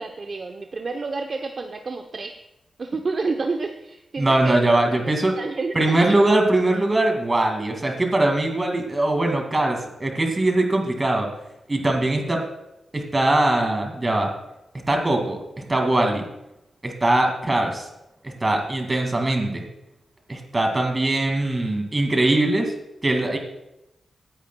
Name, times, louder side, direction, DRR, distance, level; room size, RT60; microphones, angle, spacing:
voice 1, 0.0-2.3 2.8-4.6 5.0-6.2 22.3-22.4, right 3 dB, 45° right, 4 dB, 0.7 m, -30 dB
voice 2, 4.2-5.3 5.7-11.3 11.7-12.5 12.9-14.3 14.9-16.2 16.8-17.9 18.2-19.7 20.3-22.7 23.0-23.4, right 2 dB, 25° right, 3 dB, 2.1 m, -21 dB
17.0 x 10.0 x 2.2 m, 0.87 s
wide cardioid pair, 105°, 0 cm